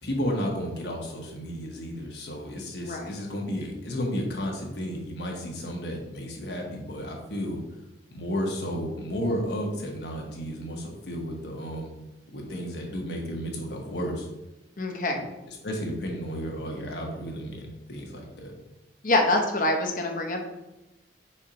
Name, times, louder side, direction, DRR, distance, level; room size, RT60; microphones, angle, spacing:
voice 1, 0.0-7.6 8.1-12.0 12.3-14.3 15.5-18.5, equal, 65° left, 0 dB, 1.1 m, -33 dB
voice 2, 2.8-3.1 14.8-15.2 19.0-20.5, left 2 dB, 45° left, 2 dB, 0.9 m, -25 dB
4.3 x 4.3 x 5.1 m, 0.96 s
head